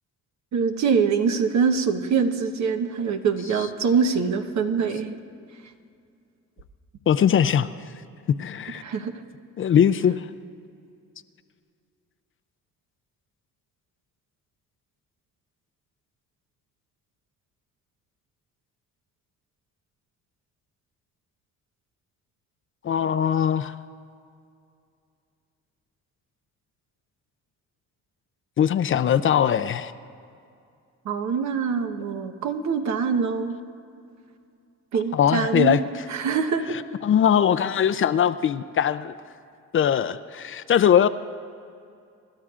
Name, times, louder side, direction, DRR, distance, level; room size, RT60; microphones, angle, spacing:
voice 1, 0.5-5.2 8.8-9.1 31.0-33.6 34.9-35.8 36.1-36.8, right 6 dB, 65° right, 6 dB, 1.1 m, -24 dB
voice 2, 7.1-7.7 8.4-8.8 9.6-10.3 22.8-23.7 28.6-29.9 35.1-35.8 37.0-39.1 39.7-41.1, left 9 dB, 45° left, 12 dB, 0.5 m, -21 dB
27.0 x 12.5 x 2.5 m, 2.4 s
cardioid pair, 90°, 30 cm